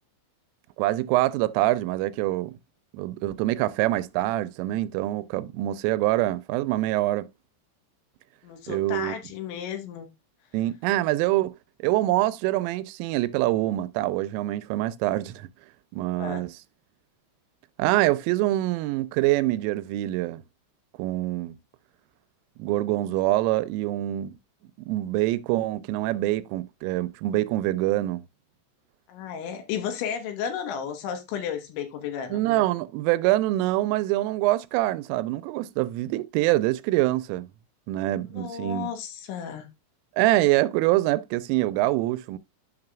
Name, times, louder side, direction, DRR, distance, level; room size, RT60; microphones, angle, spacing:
voice 1, 0.8-2.6 2.9-7.3 8.7-9.1 10.5-11.5 11.8-15.5 15.9-16.5 17.8-20.4 21.0-21.6 22.6-24.4 24.8-28.2 32.3-37.5 37.9-38.9 40.2-42.4, right 16 dB, 90° right, 3.1 m, -25 dB
voice 2, 8.4-10.1 16.2-16.4 29.1-32.4 38.3-39.7, left 8 dB, 75° left, 3.4 m, -33 dB
12.5 x 5.8 x 2.3 m
omnidirectional pair, 5.7 m